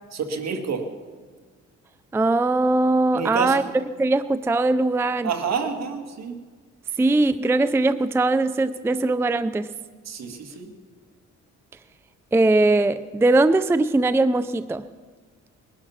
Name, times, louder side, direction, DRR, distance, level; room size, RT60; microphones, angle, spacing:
voice 1, 0.1-0.8 3.1-3.6 5.2-6.4 10.1-10.7, right 6 dB, 60° right, 5 dB, 2.1 m, -28 dB
voice 2, 2.1-5.3 7.0-9.7 12.3-14.8, right 2 dB, 10° right, 14 dB, 0.4 m, -20 dB
21.0 x 11.5 x 5.8 m, 1.5 s
cardioid pair, 90°, 30 cm